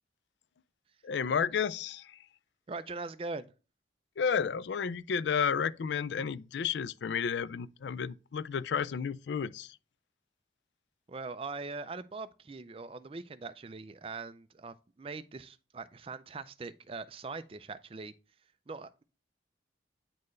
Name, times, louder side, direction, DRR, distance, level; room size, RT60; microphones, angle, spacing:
voice 1, 1.0-2.1 4.2-9.7, left 6 dB, 75° left, 0.4 m, -31 dB
voice 2, 2.7-3.5 11.1-18.1 18.7-19.0, right 3 dB, 30° right, 0.4 m, -41 dB
9.5 x 4.4 x 3.2 m
head